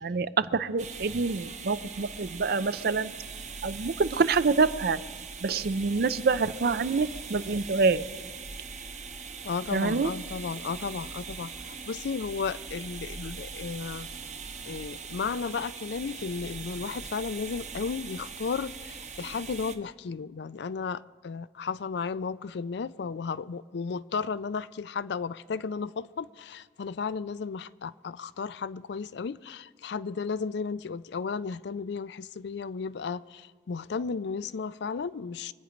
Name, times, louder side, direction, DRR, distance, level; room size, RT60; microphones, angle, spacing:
voice 1, 0.0-3.1 3.6-5.0 5.4-8.1 9.7-10.1, right 4 dB, 60° right, 0.5 m, -26 dB
sound 1, 0.8-19.8, right 5 dB, 40° right, 0.9 m, -41 dB
voice 2, 9.4-14.1 14.7-35.5, left 5 dB, 65° left, 0.4 m, -34 dB
25.0 x 8.9 x 5.1 m
head